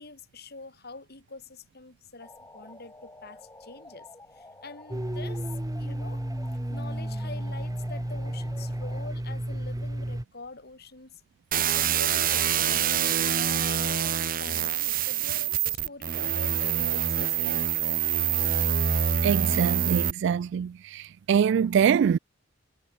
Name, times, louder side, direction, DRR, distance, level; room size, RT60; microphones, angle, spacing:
voice 1, 0.0-4.1 4.3-5.5 5.8-6.2 6.7-11.2 11.7-17.7, left 3 dB, 50° left, 3.9 m, -45 dB
sound 1, 2.2-9.1, left 2 dB, 15° left, 2.9 m, -50 dB
Domestic sounds home sounds, 4.9-10.2, right 1 dB, 20° right, 1.0 m, -32 dB
sound 2, 11.5-20.1, right 9 dB, 45° right, 1.0 m, -26 dB
voice 2, 19.2-22.2, right 7 dB, 60° right, 0.3 m, -24 dB
head